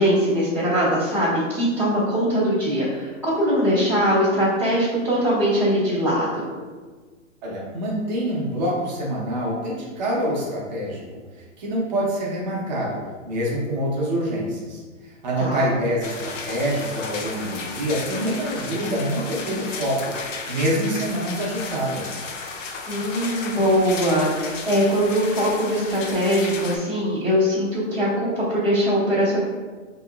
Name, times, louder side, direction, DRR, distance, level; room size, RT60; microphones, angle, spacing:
voice 1, 0.0-6.4 15.4-15.7 22.9-29.4, equal, 5° left, -15 dB, 0.7 m, -21 dB
voice 2, 7.4-11.0 11.6-13.0 13.2-14.8 15.2-20.1 20.5-22.2, equal, 35° right, -4 dB, 0.8 m, -26 dB
sound 1, 16.0-26.8, left 4 dB, 70° left, 0.6 m, -34 dB
4.5 x 2.9 x 2.3 m, 1.4 s
hypercardioid pair, 160°, 39 cm